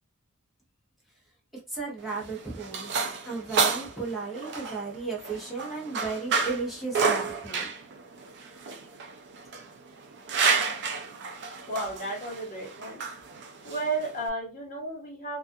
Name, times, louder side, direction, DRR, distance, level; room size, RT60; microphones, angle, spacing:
voice 1, 1.5-2.9 3.3-7.7, right 4 dB, ahead, 0.9 m, -34 dB
sound 1, 2.0-14.3, right 5 dB, 50° right, 0.4 m, -31 dB
voice 2, 11.7-13.0 13.6-15.4, right 2 dB, 40° left, 1.1 m, -33 dB
2.3 x 2.3 x 2.6 m
head